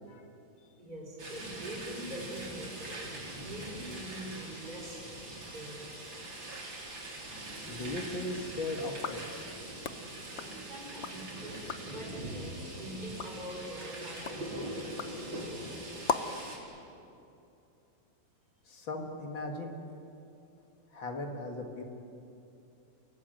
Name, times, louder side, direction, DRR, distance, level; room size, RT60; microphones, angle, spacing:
voice 1, 0.8-5.9 10.3-15.7, right 1 dB, 20° right, -2 dB, 4.9 m, -44 dB
sound 1, 1.2-16.6, right 1 dB, 65° right, 4.7 m, -42 dB
voice 2, 7.5-9.5 18.7-19.7 20.9-21.8, left 2 dB, 65° left, 3 dB, 2.6 m, -38 dB
sound 2, 8.9-11.2 11.5-12.0 12.5-16.5, left 6 dB, 50° left, 0.9 m, -40 dB
30.0 x 17.0 x 9.1 m, 2.7 s
omnidirectional pair, 2.3 m